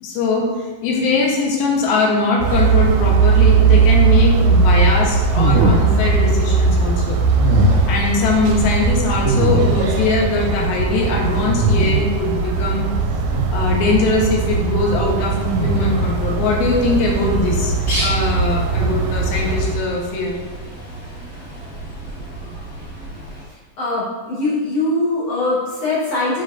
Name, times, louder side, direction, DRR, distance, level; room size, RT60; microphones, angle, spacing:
voice 1, 0.0-7.2 7.9-12.9 13.5-20.3, left 3 dB, 90° left, -1 dB, 2.9 m, -21 dB
sound 1, 2.4-19.8, right 4 dB, 80° right, 2.1 m, -18 dB
sound 2, 5.3-6.3 7.4-8.1 9.2-10.0 11.2-12.2 13.3-13.9 15.4-16.2, right 1 dB, 65° right, 1.1 m, -20 dB
Bird, 15.1-23.4, right 1 dB, 30° left, 1.2 m, -32 dB
voice 2, 23.8-26.4, left 2 dB, 70° left, -8 dB, 1.5 m, -21 dB
8.2 x 5.0 x 2.5 m, 1.3 s
omnidirectional pair, 4.3 m